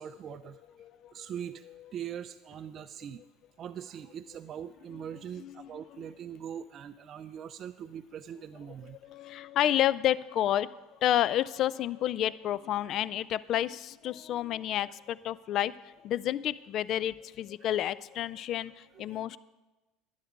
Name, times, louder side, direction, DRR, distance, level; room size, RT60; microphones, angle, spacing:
voice 1, 0.0-0.6 1.1-1.7 1.9-3.2 3.6-9.0 17.6-17.7 19.1-19.2, right 9 dB, 45° right, 9 dB, 0.4 m, -41 dB
voice 2, 0.8-1.3 5.4-5.7 9.0-10.7 11.0-19.4, left 12 dB, 50° left, 20 dB, 0.3 m, -30 dB
11.5 x 9.5 x 4.6 m, 1.1 s
hypercardioid pair, 70°, 0 cm